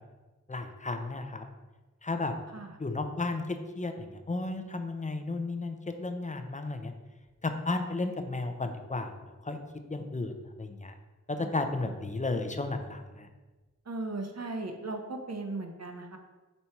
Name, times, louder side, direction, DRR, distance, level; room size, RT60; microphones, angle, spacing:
voice 1, 0.5-1.4 2.0-2.3 2.8-6.9 7.4-9.1 9.4-9.6 9.9-10.3 10.6-10.9 11.3-13.3, left 3 dB, 25° left, 7 dB, 0.7 m, -33 dB
voice 2, 13.9-16.2, right 2 dB, 60° right, 4 dB, 1.0 m, -37 dB
5.5 x 4.2 x 4.5 m, 1.2 s
wide cardioid pair, 55°, 30 cm